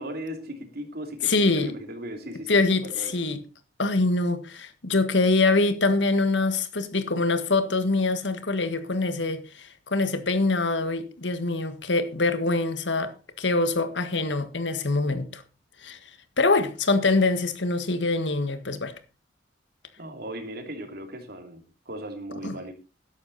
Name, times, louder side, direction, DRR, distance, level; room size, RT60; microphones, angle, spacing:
voice 1, 0.0-3.2 20.0-22.7, right 1 dB, 60° right, 3.1 m, -37 dB
voice 2, 1.2-1.7 2.5-3.4 3.8-15.4 15.8-16.0 16.4-18.9 22.4-22.6, left 3 dB, 75° left, 1.6 m, -24 dB
13.0 x 11.0 x 4.1 m
head